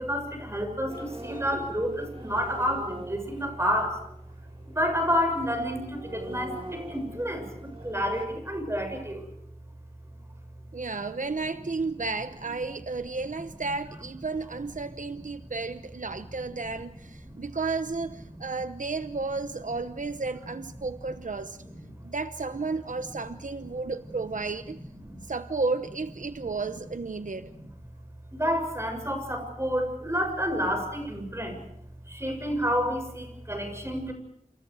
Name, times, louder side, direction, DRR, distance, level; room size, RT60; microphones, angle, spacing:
voice 1, 0.0-4.0 4.7-9.3 11.0-11.1 17.3-17.4 18.4-18.6 21.6-21.7 24.9-25.2 27.2-27.7 28.3-31.6 32.1-34.1, equal, 20° right, 4 dB, 7.1 m, -30 dB
sound 1, 0.9-8.3, right 1 dB, 40° right, 4.3 m, -43 dB
voice 2, 10.7-21.6 22.0-24.8 25.3-27.5, right 3 dB, 75° right, 10 dB, 0.9 m, -32 dB
28.0 x 27.5 x 4.9 m, 0.73 s
wide cardioid pair, 60°, 13 cm